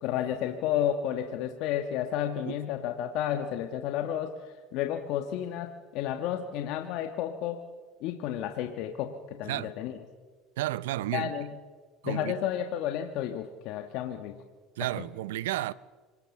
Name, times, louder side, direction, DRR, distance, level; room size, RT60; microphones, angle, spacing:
voice 1, 0.0-4.3 4.7-7.6 8.0-10.0 11.1-11.5 12.0-14.3, left 10 dB, 65° left, 1.4 m, -31 dB
voice 2, 10.6-11.3 12.0-12.3 14.8-15.7, right 15 dB, 90° right, 0.6 m, -32 dB
26.0 x 18.5 x 7.2 m
supercardioid pair, 95°, 0 cm